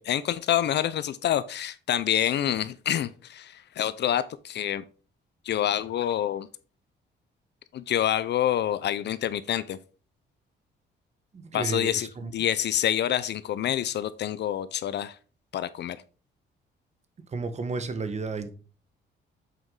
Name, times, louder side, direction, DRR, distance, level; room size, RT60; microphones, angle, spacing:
voice 1, 0.0-4.8 5.4-6.5 7.7-9.8 11.5-12.1 12.3-15.2 15.5-16.0, left 11 dB, 60° left, 0.5 m, -27 dB
voice 2, 11.3-12.3 17.3-18.5, right 4 dB, 35° right, 1.1 m, -32 dB
7.8 x 4.7 x 3.7 m
cardioid pair, 90°, 20 cm